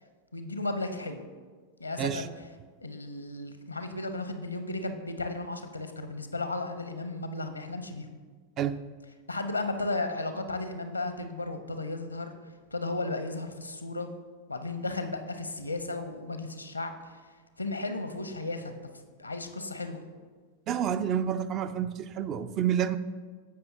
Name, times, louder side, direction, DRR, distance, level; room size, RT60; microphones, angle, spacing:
voice 1, 0.3-1.2 1.8-2.5 2.8-8.1 9.3-12.3 12.7-14.1 14.5-17.2 17.6-18.8 19.2-20.0, left 2 dB, 85° left, 8 dB, 0.7 m, -34 dB
voice 2, 20.7-23.0, right 9 dB, 35° right, 13 dB, 0.4 m, -29 dB
16.0 x 5.6 x 2.8 m, 1.5 s
figure-of-eight pair, 90°, 0 cm